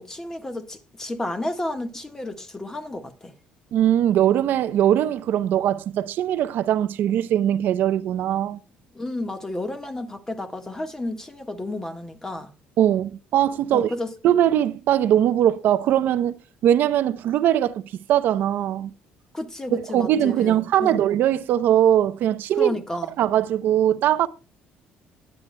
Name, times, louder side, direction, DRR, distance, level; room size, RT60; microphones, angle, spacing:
voice 1, 0.0-3.3 8.9-12.5 13.7-14.1 19.3-21.0 22.6-23.1, left 2 dB, 15° left, 1.4 m, -32 dB
voice 2, 3.7-8.6 12.8-13.9 14.2-16.3 16.6-17.8 18.1-18.9 19.7-22.7 23.2-24.3, right 11 dB, 60° right, 0.7 m, -21 dB
20.5 x 9.1 x 2.2 m
cardioid pair, 140°, 4 cm